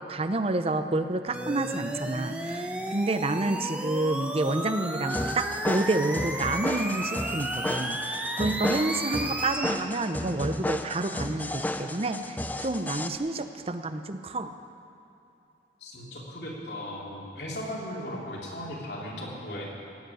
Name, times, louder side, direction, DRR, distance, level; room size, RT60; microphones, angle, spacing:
voice 1, 0.0-14.5, right 2 dB, 35° right, 9 dB, 0.6 m, -29 dB
sound 1, 1.3-9.7, right 1 dB, 5° right, 0.9 m, -33 dB
sound 2, 5.1-13.1, left 1 dB, 10° left, 0.6 m, -33 dB
voice 2, 15.8-19.7, left 1 dB, 65° left, -4 dB, 3.2 m, -37 dB
16.5 x 8.1 x 9.3 m, 2.8 s
head